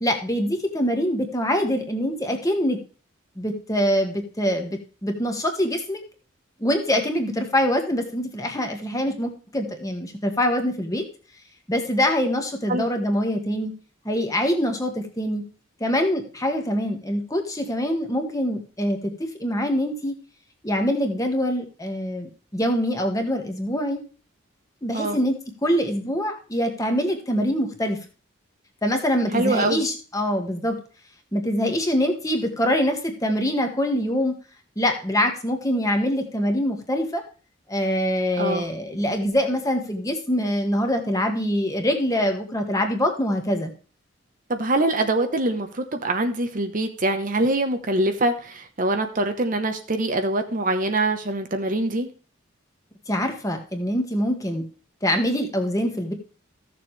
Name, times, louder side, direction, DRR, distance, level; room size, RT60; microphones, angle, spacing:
voice 1, 0.0-2.8 3.4-6.0 6.6-11.0 11.7-13.7 14.1-15.4 15.8-20.2 20.6-24.0 24.8-28.0 28.8-30.8 31.3-34.3 34.8-37.2 37.7-43.7 53.1-54.6 55.0-56.1, equal, 15° left, 4 dB, 1.6 m, -24 dB
voice 2, 29.3-29.8 38.4-38.7 44.5-52.1, right 2 dB, 40° right, 7 dB, 1.0 m, -24 dB
15.0 x 7.0 x 3.3 m, 0.37 s
head